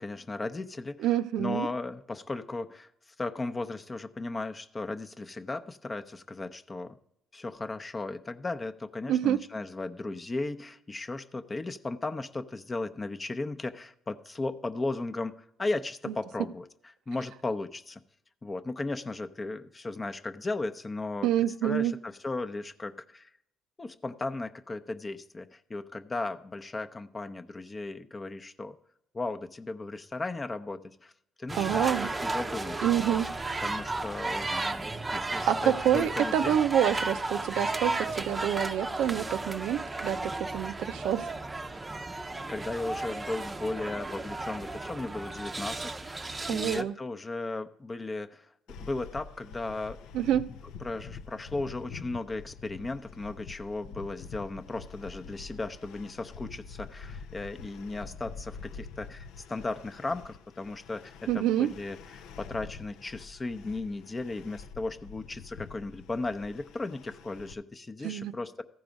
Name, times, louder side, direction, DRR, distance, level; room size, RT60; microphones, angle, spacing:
voice 1, 0.0-7.0 7.3-16.7 17.1-18.0 18.4-21.3 21.6-23.3 23.8-28.8 29.1-31.1 31.4-32.9 33.6-36.6 36.9-37.0 42.5-48.5 48.8-50.0 50.4-50.5 50.8-68.6, left 2 dB, 25° left, 8 dB, 0.6 m, -36 dB
voice 2, 1.0-1.7 9.1-9.4 21.2-21.9 31.5-32.1 32.8-33.3 35.5-41.3 46.5-46.9 50.1-50.5 61.3-61.7 68.0-68.3, right 10 dB, 75° right, 10 dB, 0.4 m, -27 dB
sound 1, 31.5-46.8, right 2 dB, 20° right, 0.6 m, -34 dB
sound 2, 48.7-67.5, left 5 dB, 80° left, 0.4 m, -46 dB
14.0 x 4.8 x 5.1 m, 0.78 s
supercardioid pair, 80°, 0 cm